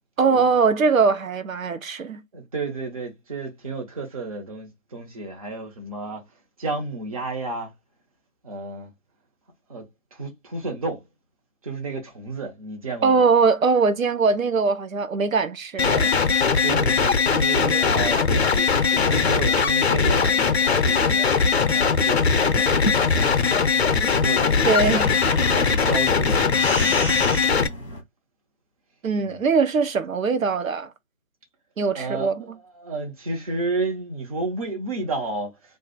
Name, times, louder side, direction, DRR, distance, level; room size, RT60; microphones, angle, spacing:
voice 1, 0.2-2.2 13.0-16.1 24.7-25.1 29.0-30.9 31.8-32.4, right 4 dB, 85° right, 0.6 m, -21 dB
voice 2, 2.3-7.7 8.4-8.9 9.7-11.1 11.6-13.3 16.2-21.3 21.7-22.9 24.2-26.7 29.2-29.4 31.9-35.8, right 3 dB, 25° right, 0.8 m, -32 dB
sound 1, 15.8-27.7, left 5 dB, 55° left, 0.6 m, -20 dB
sound 2, 22.7-28.0, left 1 dB, ahead, 0.6 m, -32 dB
2.6 x 2.4 x 3.9 m
figure-of-eight pair, 150°, 40 cm